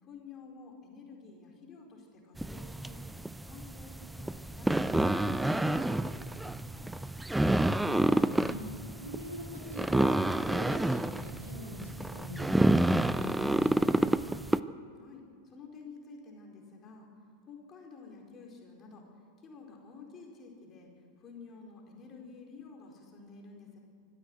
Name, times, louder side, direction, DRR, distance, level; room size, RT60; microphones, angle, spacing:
voice 1, 0.0-3.1 3.4-6.9 15.0-17.1 17.5-19.1 19.4-20.9 21.2-23.8, left 4 dB, 25° left, 0 dB, 4.6 m, -51 dB
sound 1, 2.4-14.6, right 1 dB, 5° right, 0.5 m, -29 dB
voice 2, 7.7-8.6 9.0-10.2 10.5-11.8 12.1-14.1, left 1 dB, 80° right, -1 dB, 5.0 m, -44 dB
24.5 x 13.5 x 8.0 m, 2.3 s
figure-of-eight pair, 90°, 0 cm